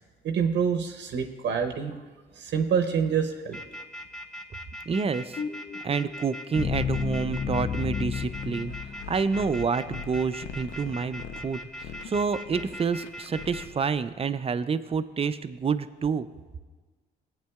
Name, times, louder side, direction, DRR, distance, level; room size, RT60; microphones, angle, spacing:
voice 1, 0.2-2.0 2.3-3.6, right 7 dB, 65° right, 5 dB, 0.7 m, -26 dB
sound 1, 3.5-13.6, equal, ahead, 0.8 m, -40 dB
voice 2, 4.9-5.4 5.8-8.7 9.1-16.3, right 5 dB, 30° right, 12 dB, 0.5 m, -28 dB
sound 2, 5.4-9.4, left 7 dB, 25° left, 0.4 m, -32 dB
sound 3, 8.2-14.0, left 7 dB, 80° left, 0.7 m, -43 dB
17.0 x 8.8 x 2.3 m, 1.3 s
cardioid pair, 90°, 20 cm